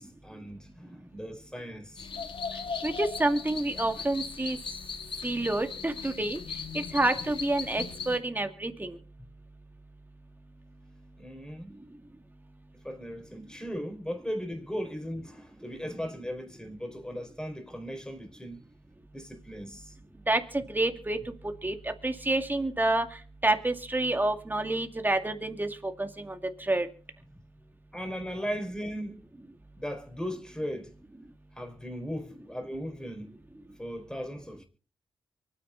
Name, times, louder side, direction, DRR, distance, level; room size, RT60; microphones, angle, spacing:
voice 1, 0.0-2.1 11.2-11.8 12.8-18.6 19.1-20.0 27.3-27.4 27.9-29.2 29.7-30.9 31.6-33.4 33.8-34.6, equal, 10° left, 4.4 m, -37 dB
sound 1, 2.0-8.2, left 5 dB, 65° left, 1.9 m, -38 dB
voice 2, 2.8-4.6 5.2-6.4 6.7-9.0 20.3-21.2 21.6-23.1 23.4-26.9, right 2 dB, 20° right, 2.2 m, -28 dB
24.0 x 9.8 x 4.0 m
supercardioid pair, 50°, 10 cm